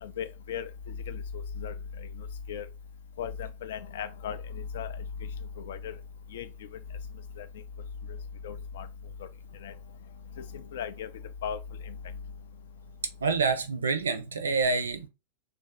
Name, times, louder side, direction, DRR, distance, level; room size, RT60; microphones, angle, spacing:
voice 1, 0.0-0.7 1.1-1.2 1.6-1.7 2.5-2.6 3.2-4.4 4.7-4.9 5.7-5.9 6.3-6.5 7.4-7.5 8.4-8.8 9.6-9.7 10.7-11.1 11.4-11.6, left 8 dB, 60° left, 0.5 m, -36 dB
voice 2, 13.2-15.1, right 4 dB, 70° right, 0.5 m, -27 dB
3.3 x 2.6 x 4.0 m
figure-of-eight pair, 90°, 0 cm